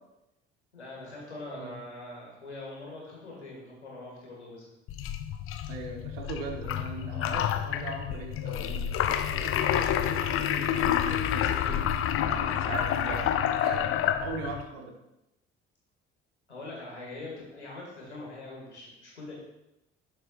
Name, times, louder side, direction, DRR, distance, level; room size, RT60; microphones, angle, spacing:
voice 1, 0.7-4.6 13.0-13.1 16.5-19.3, left 2 dB, 85° left, -4 dB, 2.2 m, -43 dB
sound 1, 4.9-14.6, left 10 dB, 40° left, 0.6 m, -28 dB
voice 2, 5.7-11.9 12.2-13.9 14.2-14.9, right 4 dB, 65° right, 2 dB, 1.4 m, -40 dB
9.8 x 7.6 x 2.5 m, 0.92 s
figure-of-eight pair, 50°, 33 cm